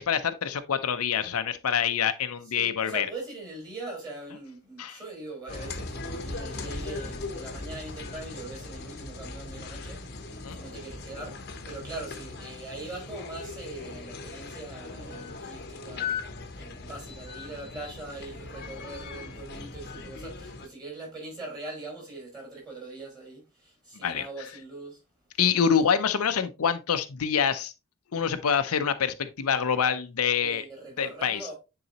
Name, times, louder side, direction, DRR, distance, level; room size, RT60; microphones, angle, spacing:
voice 1, 0.0-3.1 4.8-5.0 9.7-9.8 10.4-10.6 24.0-24.3 25.4-27.7 28.1-30.6 31.0-31.5, left 7 dB, 75° left, 0.6 m, -26 dB
voice 2, 2.5-25.0 30.4-31.5, right 2 dB, 20° right, 4.3 m, -42 dB
sound 1, 5.5-20.7, left 3 dB, 45° left, 0.9 m, -39 dB
9.2 x 4.0 x 2.9 m
head